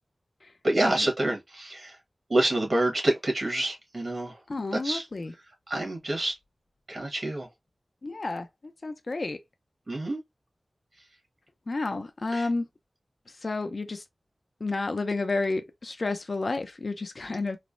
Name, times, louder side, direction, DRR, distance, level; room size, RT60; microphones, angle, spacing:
voice 1, 0.6-2.0 2.3-4.4 4.7-5.0 5.7-6.3 6.9-7.5 9.9-10.2 12.3-12.5, right 1 dB, 55° right, 1.1 m, -27 dB
voice 2, 4.5-5.3 8.0-8.5 8.8-9.4 11.7-12.7 13.4-14.0 14.6-17.6, left 3 dB, 55° left, 0.4 m, -30 dB
3.1 x 2.0 x 2.4 m
wide cardioid pair, 90°, 0 cm